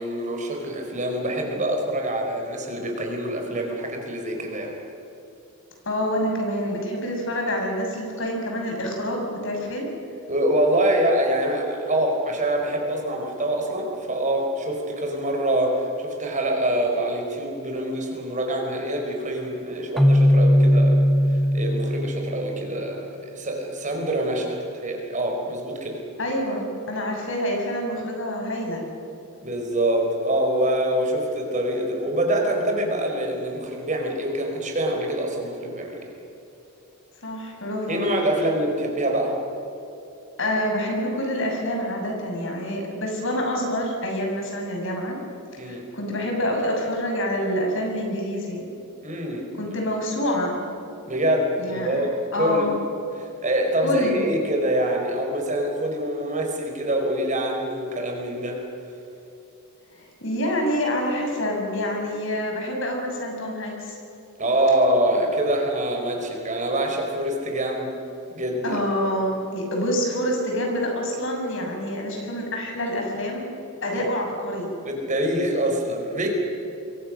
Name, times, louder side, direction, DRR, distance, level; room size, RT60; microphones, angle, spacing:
voice 1, 0.0-4.7 10.3-21.0 21.3-26.0 29.4-36.0 37.9-39.4 45.6-45.8 49.0-49.4 51.1-52.7 53.1-58.6 64.4-67.9 68.3-68.8 74.8-76.3, right 1 dB, 35° right, 2 dB, 4.6 m, -25 dB
voice 2, 5.8-9.9 26.2-28.8 37.2-38.1 40.4-45.2 45.6-48.7 49.6-50.7 51.6-52.1 52.3-52.7 53.8-54.3 59.9-64.0 68.6-73.5 73.8-74.7, equal, 60° left, 1 dB, 6.4 m, -27 dB
Keyboard (musical), 20.0-22.9, equal, ahead, 0.8 m, -19 dB
28.0 x 22.5 x 6.5 m, 2.9 s
head